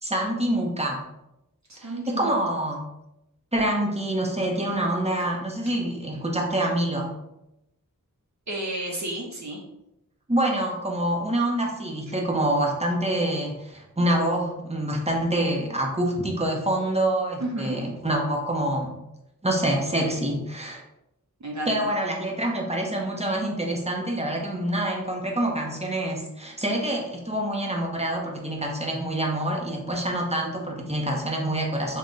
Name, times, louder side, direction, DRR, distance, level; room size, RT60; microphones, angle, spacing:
voice 1, 0.0-1.0 1.8-2.9 3.5-7.1 10.3-19.0 19.4-20.8 21.7-32.0, right 1 dB, 20° right, 0 dB, 0.7 m, -26 dB
voice 2, 1.7-2.4 8.5-9.6 17.4-17.8 21.4-21.9, right 1 dB, 55° right, -2 dB, 0.7 m, -32 dB
3.4 x 2.2 x 3.9 m, 0.87 s
wide cardioid pair, 55°, 34 cm